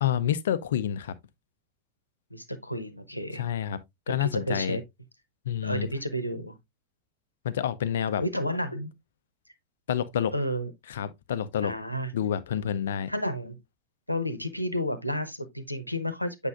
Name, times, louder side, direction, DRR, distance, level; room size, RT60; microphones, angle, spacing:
voice 1, 0.0-1.1 3.3-3.8 4.1-4.8 5.5-5.9 7.4-8.2 9.9-10.3 10.9-11.7 12.1-13.1, left 9 dB, 60° left, 0.6 m, -28 dB
voice 2, 2.3-3.4 4.2-4.8 5.6-6.6 8.2-8.9 10.3-10.7 11.6-12.1 13.1-13.6 14.1-16.5, equal, 90° left, 0.9 m, -31 dB
8.2 x 5.3 x 2.4 m
figure-of-eight pair, 90°, 0 cm